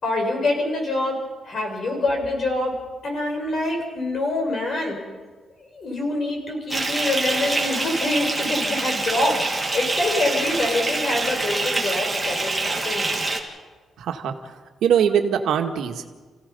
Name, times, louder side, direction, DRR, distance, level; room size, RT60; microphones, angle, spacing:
voice 1, 0.0-2.8 3.0-5.0 5.6-13.2, left 2 dB, 40° left, 1 dB, 5.9 m, -25 dB
Bathtub (filling or washing) / Fill (with liquid), 6.7-13.4, right 2 dB, 10° right, 2.4 m, -25 dB
voice 2, 14.0-14.5 14.8-16.0, right 8 dB, 90° right, 4 dB, 1.8 m, -22 dB
30.0 x 16.5 x 5.6 m, 1.4 s
wide cardioid pair, 170°, 0 cm